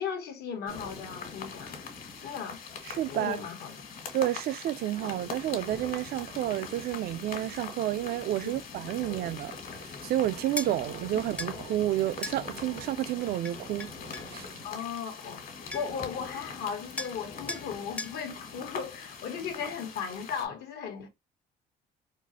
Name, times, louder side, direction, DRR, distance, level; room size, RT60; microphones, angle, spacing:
voice 1, 0.0-1.8 2.2-2.6 3.1-3.8 8.4-8.5 14.6-21.1, left 7 dB, 70° left, 1.1 m, -36 dB
sound 1, 0.7-20.5, left 5 dB, 55° left, 1.5 m, -42 dB
voice 2, 2.9-3.4 4.1-13.9 14.3-14.5, right 13 dB, 65° right, 0.4 m, -30 dB
sound 2, 10.3-16.0, right 7 dB, 80° right, 1.1 m, -54 dB
sound 3, 10.6-10.7 11.4-11.5 12.2-12.4 13.4-14.3 15.4-15.5 15.7-16.0 17.0-17.2 17.5-17.7 18.0-18.2, left 2 dB, 5° left, 0.5 m, -37 dB
4.2 x 2.4 x 2.7 m
cardioid pair, 110°, 17 cm